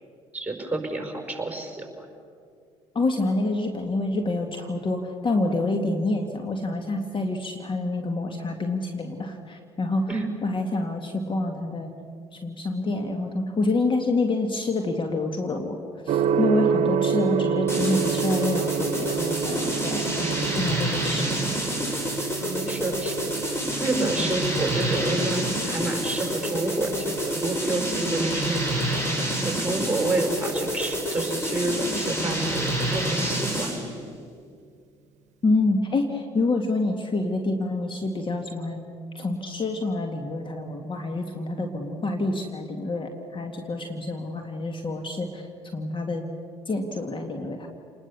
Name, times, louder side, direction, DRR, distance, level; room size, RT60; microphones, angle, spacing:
voice 1, 0.3-2.1 10.1-10.3 22.4-23.3 23.8-29.0 29.4-33.7, right 2 dB, 10° right, 2 dB, 5.7 m, -29 dB
voice 2, 2.9-10.1 10.4-11.9 12.3-15.8 16.1-20.1 20.6-21.4 35.4-38.9 39.1-45.4 45.7-46.2 46.7-47.7, left 2 dB, 35° left, 4 dB, 2.2 m, -27 dB
Gong, 16.1-33.9, right 8 dB, 55° right, 1.0 m, -31 dB
sound 1, 17.7-33.9, right 1 dB, 15° left, 6.8 m, -28 dB
28.5 x 20.5 x 7.0 m, 2.3 s
hypercardioid pair, 55°, 14 cm